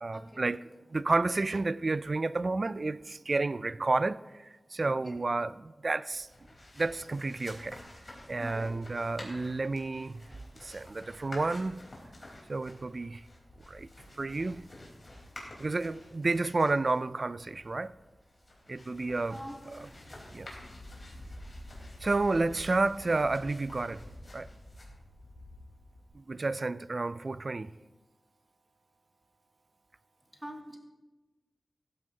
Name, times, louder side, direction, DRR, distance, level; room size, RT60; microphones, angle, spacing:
voice 1, 0.0-0.6 0.9-6.3 6.8-7.8 8.3-10.2 10.6-11.8 12.5-13.2 13.7-13.9 14.2-14.6 15.6-17.9 18.7-19.4 19.7-19.8 20.3-20.5 22.0-24.0 24.3-24.5 26.1-27.7, right 3 dB, 50° right, 0.3 m, -31 dB
voice 2, 4.8-5.2 8.4-8.8 19.3-20.1 30.3-30.8, equal, 10° right, 2.5 m, -45 dB
sound 1, 6.1-26.1, left 1 dB, 40° left, 4.1 m, -49 dB
15.5 x 14.0 x 2.9 m
wide cardioid pair, 85°, 0 cm